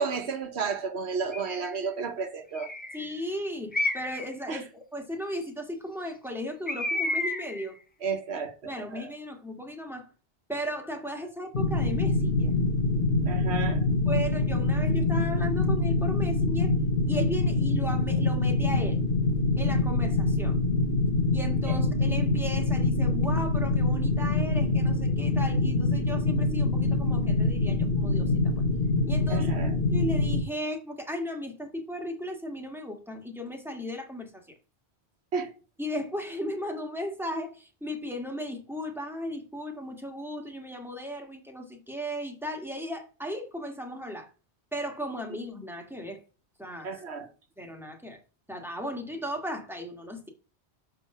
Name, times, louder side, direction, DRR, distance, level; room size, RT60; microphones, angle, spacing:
voice 1, 0.0-2.7 4.5-4.6 8.0-9.1 13.2-13.8 21.7-21.8 29.3-29.7 35.3-35.5 46.8-47.3, right 5 dB, 75° right, 1.2 m, -32 dB
Bird, 1.3-1.8 2.5-3.1 3.7-4.3 6.7-7.7, left 2 dB, 15° left, 0.3 m, -31 dB
voice 2, 2.9-7.8 8.6-10.1 10.5-12.5 14.0-16.7 17.1-19.0 19.6-20.6 21.3-28.5 29.1-29.5 29.9-34.4 35.8-44.3 44.7-46.2 46.6-46.9 47.6-48.2 48.5-50.3, equal, ahead, 1.4 m, -36 dB
sound 1, 11.5-30.4, left 3 dB, 55° left, 1.2 m, -25 dB
6.7 x 3.8 x 5.4 m
omnidirectional pair, 1.1 m